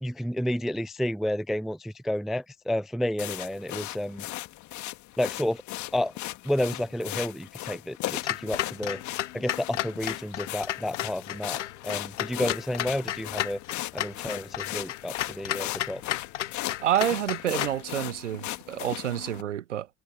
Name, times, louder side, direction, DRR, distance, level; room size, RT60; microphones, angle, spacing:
voice 1, 0.0-4.2 5.2-5.6 5.9-6.1 6.4-9.0 9.3-13.6 13.9-16.0, left 1 dB, ahead, 0.4 m, -30 dB
sound 1, 3.2-19.4, left 17 dB, 55° left, 2.2 m, -37 dB
Clock, 8.2-17.8, left 12 dB, 80° left, 0.9 m, -33 dB
voice 2, 16.8-19.9, right 11 dB, 85° right, 0.8 m, -28 dB
figure-of-eight pair, 65°, 36 cm